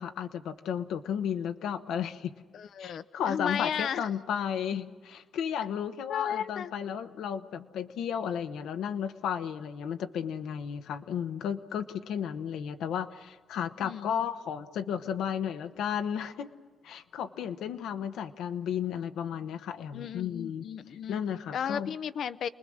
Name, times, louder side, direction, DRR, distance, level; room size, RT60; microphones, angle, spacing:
voice 1, 0.0-2.3 2.8-16.5 16.8-20.7 21.1-21.9, left 8 dB, 80° left, 8 dB, 1.1 m, -33 dB
voice 2, 2.5-4.1 6.1-6.7 13.8-14.1 19.9-21.2 21.5-22.5, left 8 dB, 65° left, 14 dB, 0.7 m, -34 dB
29.0 x 20.5 x 6.5 m, 1.4 s
cardioid pair, 90°, 0 cm